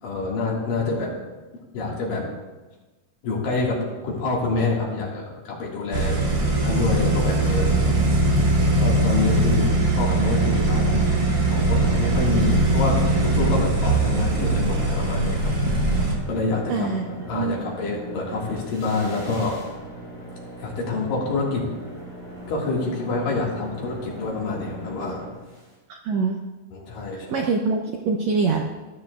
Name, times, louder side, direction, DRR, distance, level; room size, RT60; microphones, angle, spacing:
voice 1, 0.0-1.1 1.7-2.3 3.2-3.8 4.0-6.2 6.6-7.8 8.8-9.7 10.0-11.2 11.5-15.5 16.2-16.9 17.3-19.6 20.6-21.7 22.5-25.2 26.7-27.5, left 3 dB, 85° left, -3 dB, 3.6 m, -27 dB
sound 1, 5.9-16.2, right 2 dB, 40° right, 1.5 m, -21 dB
sound 2, 11.2-25.7, equal, 25° left, 3.7 m, -39 dB
voice 2, 16.7-17.0 17.3-17.7 25.9-26.4 27.1-28.6, right 4 dB, 80° right, 2 dB, 1.5 m, -24 dB
12.5 x 12.5 x 2.4 m, 1.2 s
omnidirectional pair, 3.9 m